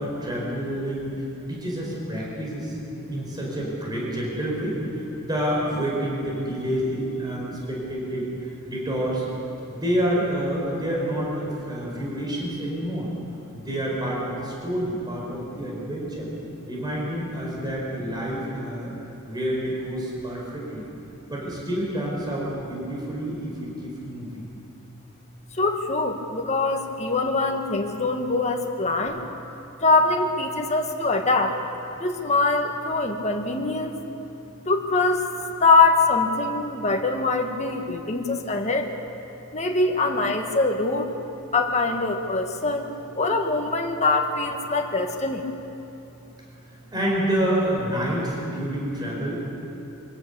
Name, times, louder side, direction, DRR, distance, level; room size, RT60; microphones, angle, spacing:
voice 1, 0.0-9.2 9.7-13.1 13.5-16.3 16.7-18.9 19.2-20.9 21.3-24.5 39.8-39.9 46.9-49.4, equal, 20° right, -4 dB, 5.0 m, -28 dB
voice 2, 25.5-29.2 29.8-31.6 32.0-33.9 34.6-35.3 35.6-38.9 39.5-41.1 41.5-42.9 43.1-45.4, left 3 dB, 30° left, 3 dB, 1.7 m, -23 dB
24.5 x 17.0 x 6.9 m, 2.9 s
head